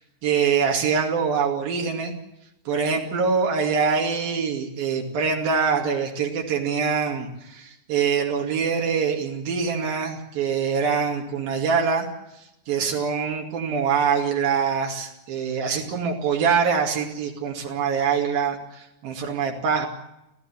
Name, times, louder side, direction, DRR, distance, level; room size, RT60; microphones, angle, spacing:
voice 1, 0.2-2.1 2.7-12.1 12.7-19.9, right 6 dB, 90° right, 1 dB, 4.2 m, -24 dB
25.0 x 15.5 x 8.6 m, 0.87 s
omnidirectional pair, 4.1 m